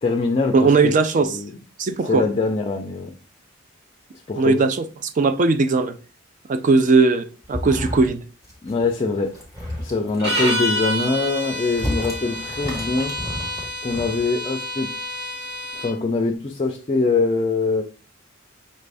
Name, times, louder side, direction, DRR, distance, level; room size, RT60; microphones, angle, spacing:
voice 1, 0.0-1.5 2.0-3.1 4.3-4.6 8.6-9.4 9.8-13.1 13.8-14.9 15.7-17.8, left 3 dB, 30° left, 0.4 m, -23 dB
voice 2, 0.5-1.3 1.8-2.2 4.3-6.0 6.5-8.2, right 4 dB, 40° right, 0.4 m, -18 dB
sound 1, 7.4-8.2 8.4-8.8 9.2-10.2 10.8-14.3, left 1 dB, 15° right, 1.3 m, -31 dB
sound 2, 10.2-16.0, equal, 55° right, 1.3 m, -28 dB
5.3 x 2.5 x 3.3 m
head